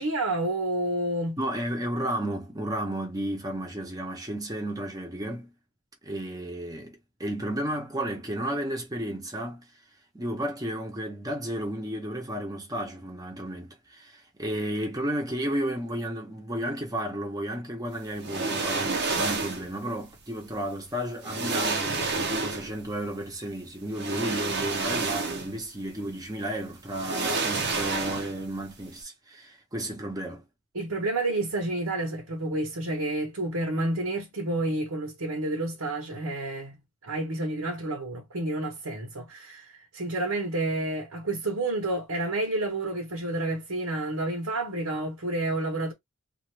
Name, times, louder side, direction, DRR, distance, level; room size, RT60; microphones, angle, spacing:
voice 1, 0.0-1.4 30.7-36.7 37.0-45.9, right 2 dB, 80° right, 1.1 m, -29 dB
voice 2, 1.4-5.5 6.0-9.7 10.1-30.4, right 1 dB, 15° right, 0.9 m, -33 dB
sound 1, 18.2-19.7 20.8-20.9 21.2-22.8 23.9-25.6 26.0-26.1 26.9-28.5 28.8-28.9, right 3 dB, 55° right, 0.8 m, -29 dB
2.5 x 2.5 x 3.2 m
head